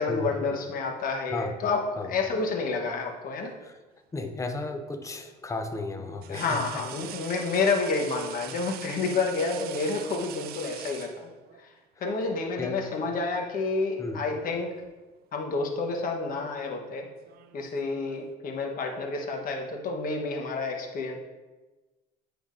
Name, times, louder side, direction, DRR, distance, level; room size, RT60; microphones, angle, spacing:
voice 1, 0.0-1.8 2.1-3.5 6.3-11.3 11.6-11.7 12.0-14.7 15.3-17.1 17.5-21.2, left 4 dB, 55° left, 2 dB, 1.1 m, -29 dB
sound 1, 1.9-2.8 4.5-4.7 6.2-11.7 12.9-13.1 13.5-14.2 14.5-14.9 15.7-18.3, right 11 dB, 65° right, 0.4 m, -44 dB
voice 2, 4.1-6.6 12.2-12.3 12.6-12.9 14.0-14.2, left 3 dB, 20° left, 6 dB, 0.6 m, -34 dB
9.3 x 4.9 x 2.5 m, 1.2 s
cardioid pair, 110°, 17 cm